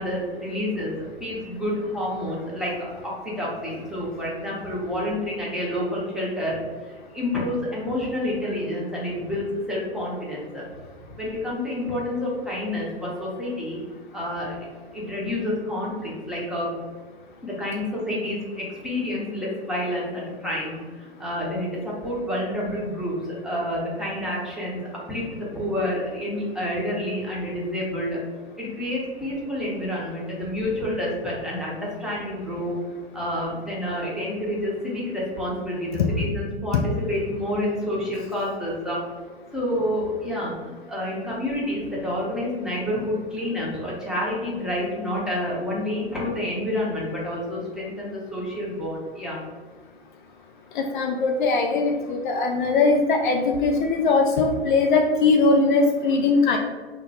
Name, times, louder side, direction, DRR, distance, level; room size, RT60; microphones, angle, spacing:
voice 1, 0.0-6.6 6.9-10.6 11.2-13.8 14.1-14.6 14.9-16.7 17.4-24.8 25.1-28.2 28.6-32.8 33.1-39.0 39.5-49.4, left 1 dB, ahead, -6 dB, 0.7 m, -29 dB
voice 2, 50.8-56.6, left 3 dB, 50° left, 3 dB, 0.4 m, -20 dB
2.9 x 2.1 x 4.1 m, 1.4 s
hypercardioid pair, 115°, 32 cm